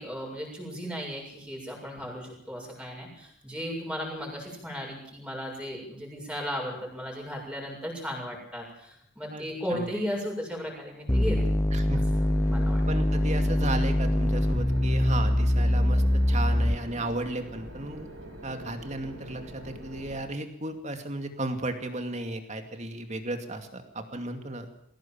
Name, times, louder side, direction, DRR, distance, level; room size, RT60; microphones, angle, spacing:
voice 1, 0.0-11.4 12.2-12.8, equal, 5° right, -1 dB, 7.0 m, -35 dB
voice 2, 9.3-9.9 11.7-12.0 12.9-18.1 18.4-24.7, right 2 dB, 35° right, 6 dB, 2.5 m, -34 dB
sound 1, 11.1-17.1, left 1 dB, 15° left, 0.7 m, -24 dB
sound 2, 12.0-20.2, right 1 dB, 75° right, 5.6 m, -44 dB
21.5 x 17.0 x 7.5 m, 0.73 s
head